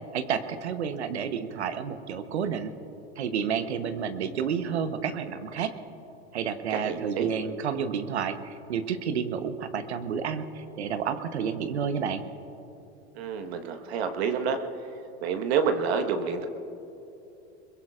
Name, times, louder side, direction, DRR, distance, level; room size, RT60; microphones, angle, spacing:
voice 1, 0.1-2.7 3.2-5.7 6.3-12.2, right 7 dB, 90° right, 10 dB, 1.0 m, -30 dB
voice 2, 6.7-7.3 13.1-14.6 15.2-16.5, right 6 dB, 70° right, 6 dB, 1.4 m, -28 dB
22.5 x 21.5 x 2.5 m, 2.9 s
hypercardioid pair, 100°, 32 cm